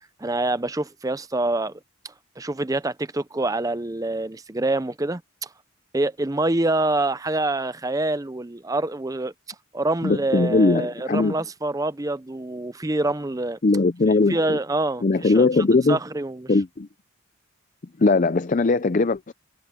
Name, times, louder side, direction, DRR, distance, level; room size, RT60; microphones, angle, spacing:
voice 1, 0.2-5.5 5.9-9.3 9.7-13.6 14.3-15.5 15.9-16.5, right 2 dB, 15° right, 0.6 m, -26 dB
voice 2, 10.0-11.4 13.6-14.6 15.0-16.0 16.5-16.9 18.0-19.3, left 3 dB, 35° left, 0.5 m, -20 dB
head